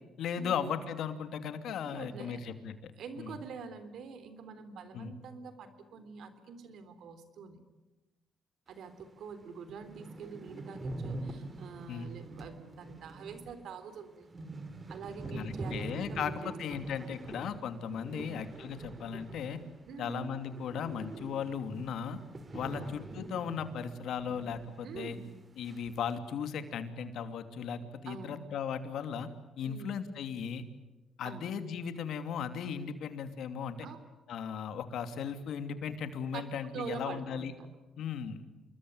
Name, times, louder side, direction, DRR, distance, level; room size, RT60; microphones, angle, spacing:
voice 1, 0.2-2.9 3.2-3.4 4.9-5.2 11.9-12.1 15.3-19.6 20.0-22.2 22.5-25.2 25.6-29.3 29.6-30.6 31.2-33.9 34.3-37.5 38.0-38.4, left 7 dB, 75° left, 9 dB, 2.7 m, -37 dB
voice 2, 1.9-2.4 3.0-7.6 8.7-14.3 14.9-16.8 18.1-18.4 19.9-20.2 22.7-22.9 24.8-25.3 28.1-28.5 29.6-29.9 31.2-31.5 33.8-34.0 36.3-36.5 36.7-37.7, right 5 dB, 70° right, 10 dB, 3.6 m, -45 dB
sound 1, 9.0-9.1 9.4-9.5 9.7-19.9 20.2-24.7 24.9-25.0 25.7-26.1, right 2 dB, 30° right, 3.0 m, -44 dB
28.0 x 21.5 x 9.7 m, 1.1 s
cardioid pair, 90°, 0 cm